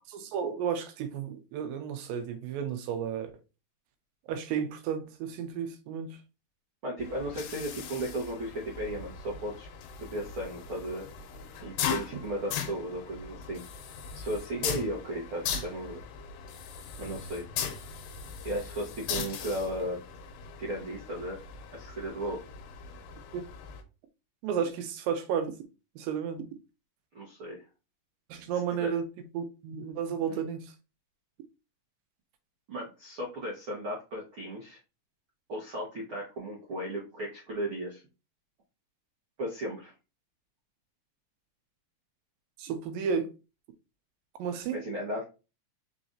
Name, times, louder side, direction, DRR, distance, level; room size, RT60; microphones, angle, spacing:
voice 1, 0.1-3.3 4.3-6.2 23.3-23.4 24.4-25.6 26.0-26.4 28.3-30.7 42.6-43.3 44.4-44.8, right 7 dB, 85° right, 2.4 m, -32 dB
voice 2, 6.8-9.7 10.0-11.1 11.6-13.6 14.1-16.0 17.0-17.4 18.4-20.0 20.6-21.4 21.7-22.4 27.1-27.6 28.7-28.9 30.3-30.4 32.7-34.8 35.5-38.0 39.4-39.9 44.7-45.2, right 1 dB, 70° right, 1.2 m, -35 dB
sound 1, 7.0-23.8, left 7 dB, 90° left, 2.4 m, -39 dB
5.0 x 4.0 x 2.5 m
omnidirectional pair, 4.1 m